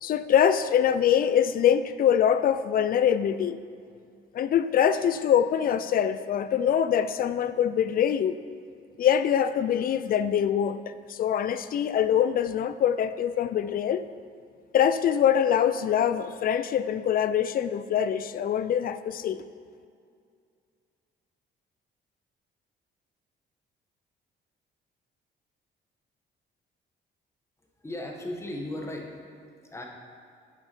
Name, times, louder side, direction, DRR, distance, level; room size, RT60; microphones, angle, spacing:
voice 1, 0.0-3.6 4.3-8.4 9.0-14.0 14.7-19.4, left 9 dB, 45° left, 13 dB, 0.4 m, -24 dB
voice 2, 27.8-29.2 29.5-29.8, left 1 dB, 15° left, 0 dB, 1.2 m, -36 dB
8.2 x 5.6 x 4.4 m, 2.3 s
cardioid pair, 90°, 20 cm